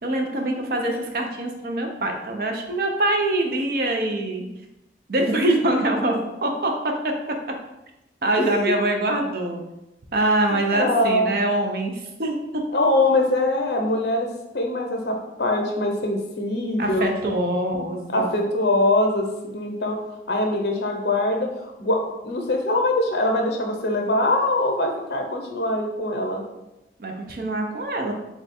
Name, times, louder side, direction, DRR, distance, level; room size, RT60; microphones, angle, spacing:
voice 1, 0.0-4.5 5.1-7.1 8.2-9.6 10.1-12.4 16.8-18.3 27.0-28.1, right 1 dB, 55° right, 3 dB, 0.5 m, -24 dB
voice 2, 8.4-8.8 10.5-11.3 12.7-14.3 14.5-17.1 17.7-20.0 20.3-22.0 22.2-26.4, left 1 dB, 70° left, 2 dB, 0.7 m, -23 dB
3.7 x 2.3 x 4.1 m, 0.95 s
head